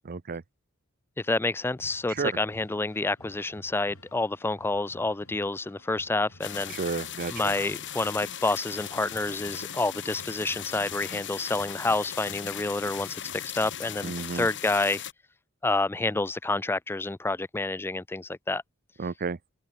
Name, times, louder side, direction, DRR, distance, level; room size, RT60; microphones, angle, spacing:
voice 1, 0.0-0.4 2.1-2.3 6.7-7.5 14.0-14.5 19.0-19.4, right 4 dB, 40° right, 0.6 m, -32 dB
voice 2, 1.2-6.7 7.3-15.0 15.6-18.6, left 2 dB, 10° left, 0.4 m, -28 dB
sound 1, 1.6-14.2, left 1 dB, 75° left, 7.8 m, -55 dB
sound 2, 6.4-15.1, left 10 dB, 55° left, 5.6 m, -38 dB
head